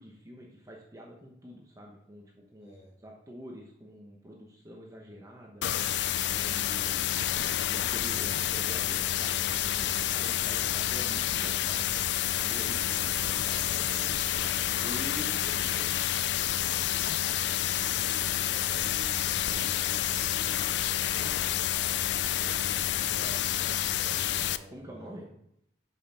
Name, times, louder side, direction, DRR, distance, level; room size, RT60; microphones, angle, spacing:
voice 1, 0.0-2.7 3.0-5.7 6.3-7.2 7.6-13.1 14.8-15.9 24.7-25.3, equal, 20° right, -1 dB, 0.9 m, -46 dB
voice 2, 2.6-2.9 12.8-14.8 17.7-21.7 22.2-25.1, equal, 35° left, -4 dB, 3.4 m, -50 dB
sound 1, 5.6-24.6, left 11 dB, 65° left, 0.4 m, -29 dB
6.5 x 5.4 x 5.7 m, 0.75 s
head